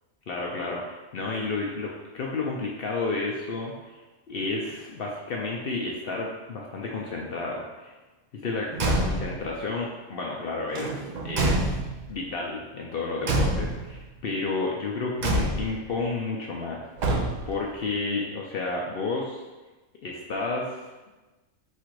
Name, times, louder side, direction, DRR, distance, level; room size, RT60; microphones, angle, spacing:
voice 1, 0.3-4.0 4.3-7.9 8.3-11.8 12.1-16.9 17.5-19.4 20.0-20.8, left 3 dB, 60° left, -2 dB, 0.6 m, -31 dB
Car / Truck / Slam, 8.7-9.5 10.7-12.1 13.2-14.0 15.2-15.9 17.0-17.6, right 2 dB, 60° right, 0.4 m, -26 dB
4.2 x 2.4 x 4.6 m, 1.1 s
omnidirectional pair, 1.4 m